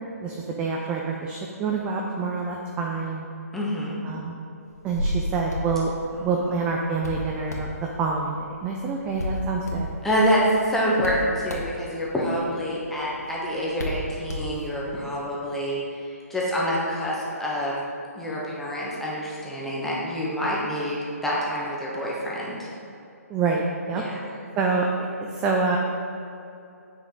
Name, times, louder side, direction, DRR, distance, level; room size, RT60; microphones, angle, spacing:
voice 1, 0.2-3.3 4.0-4.4 4.8-5.9 6.2-9.9 23.3-23.6 23.9-24.0 24.6-24.9 25.2-25.8, right 4 dB, 15° right, -1 dB, 0.4 m, -27 dB
voice 2, 3.5-4.0 6.1-6.6 10.0-17.7 18.1-22.7 23.9-24.2, equal, 5° left, -6 dB, 1.1 m, -27 dB
Hands, 4.7-15.0, left 1 dB, 80° left, 1.5 m, -34 dB
7.9 x 5.9 x 3.9 m, 2.7 s
figure-of-eight pair, 140°, 9 cm